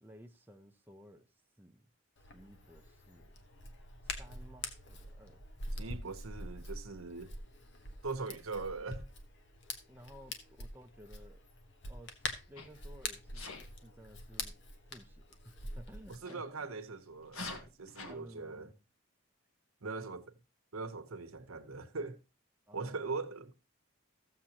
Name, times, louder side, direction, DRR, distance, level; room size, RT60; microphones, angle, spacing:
voice 1, 0.0-1.3 1.6-1.9 2.3-3.3 4.2-5.4 9.9-11.4 11.9-13.4 13.8-14.6 14.9-16.7 18.1-18.8 22.7-23.1, equal, 10° right, 0.7 m, -56 dB
Hands, 2.2-16.2, left 2 dB, 55° left, 1.2 m, -45 dB
voice 2, 5.8-7.3 8.0-9.1 16.1-18.7 19.8-20.4 20.7-22.2 22.7-23.7, right 4 dB, 80° right, 1.0 m, -41 dB
Sneeze, 12.6-12.8 13.3-13.7 16.2-16.4 17.2-18.1, left 3 dB, 85° left, 1.5 m, -44 dB
14.5 x 7.5 x 2.9 m
head